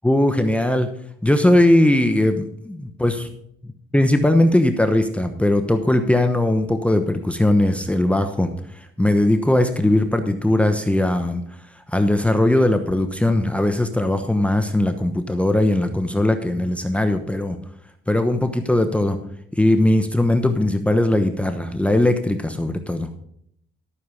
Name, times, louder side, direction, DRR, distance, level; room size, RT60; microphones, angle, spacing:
voice 1, 0.0-0.9 1.2-3.3 3.9-11.4 11.8-17.6 18.1-19.2 19.5-23.2, left 1 dB, 5° left, 6 dB, 1.0 m, -19 dB
13.0 x 6.6 x 5.6 m, 0.70 s
cardioid pair, 90°, 20 cm